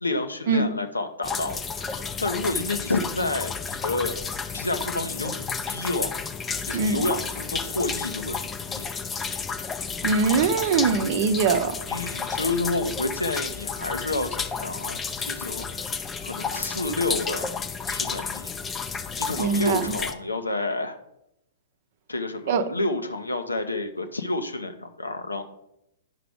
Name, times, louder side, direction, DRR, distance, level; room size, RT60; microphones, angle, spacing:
voice 1, 0.0-4.2 4.5-6.1 6.7-8.8 11.9-15.9 16.2-17.5 17.9-18.5 19.2-21.0 22.1-25.4, left 2 dB, 85° left, 7 dB, 0.8 m, -29 dB
sound 1, 1.2-20.1, left 5 dB, 15° left, 0.5 m, -32 dB
voice 2, 6.7-7.0 10.0-11.8 19.4-19.9 22.5-22.6, right 5 dB, 50° right, 10 dB, 0.7 m, -22 dB
9.2 x 5.8 x 3.6 m, 0.82 s
figure-of-eight pair, 110°, 0 cm